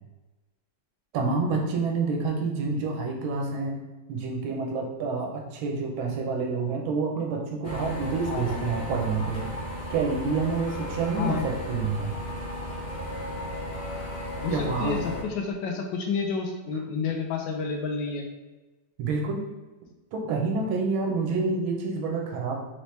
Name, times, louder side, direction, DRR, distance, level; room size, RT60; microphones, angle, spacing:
voice 1, 1.1-3.8 4.1-9.5 9.9-12.1 14.5-15.1 19.0-19.4 20.1-22.6, right 4 dB, 90° right, 1 dB, 1.6 m, -28 dB
sound 1, 7.6-15.2, left 1 dB, 50° left, 0.5 m, -35 dB
voice 2, 8.3-8.6 11.2-11.4 14.4-18.2, left 5 dB, 75° left, 2 dB, 1.2 m, -30 dB
4.2 x 3.0 x 3.2 m, 1.1 s
omnidirectional pair, 2.2 m